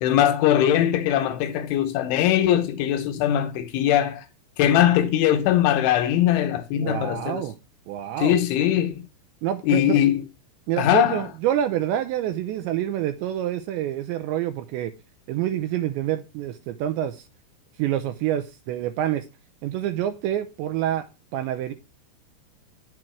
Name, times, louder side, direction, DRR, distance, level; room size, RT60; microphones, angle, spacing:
voice 1, 0.0-4.3 4.6-7.4 8.2-9.0 9.7-10.2 10.8-11.3, left 11 dB, 80° left, 3.2 m, -21 dB
voice 2, 6.8-7.5 7.9-8.4 9.4-10.0 10.7-14.9 15.3-17.3 17.8-19.2 19.6-21.1 21.3-21.7, right 11 dB, 80° right, 2.7 m, -27 dB
10.0 x 7.6 x 4.5 m
omnidirectional pair, 5.8 m